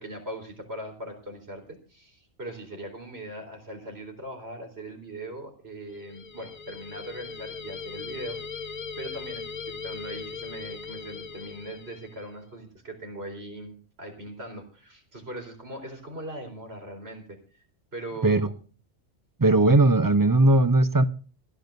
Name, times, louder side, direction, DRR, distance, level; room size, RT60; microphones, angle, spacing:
voice 1, 0.0-17.6 17.9-18.5, right 1 dB, 65° right, 4.3 m, -40 dB
sound 1, 5.9-12.3, left 5 dB, 40° left, 0.7 m, -39 dB
voice 2, 19.4-21.1, right 2 dB, 25° right, 0.5 m, -19 dB
27.0 x 10.5 x 2.6 m
omnidirectional pair, 1.1 m